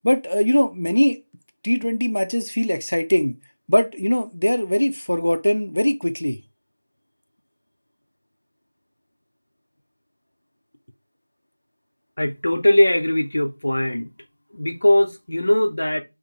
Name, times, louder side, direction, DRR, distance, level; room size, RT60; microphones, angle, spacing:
voice 1, 0.0-1.2 1.6-3.4 3.7-6.4, equal, 85° left, 0.5 m, -21 dB
voice 2, 12.2-14.1 14.5-16.0, left 1 dB, 35° left, 0.8 m, -20 dB
4.3 x 2.2 x 2.8 m
figure-of-eight pair, 180°, 0 cm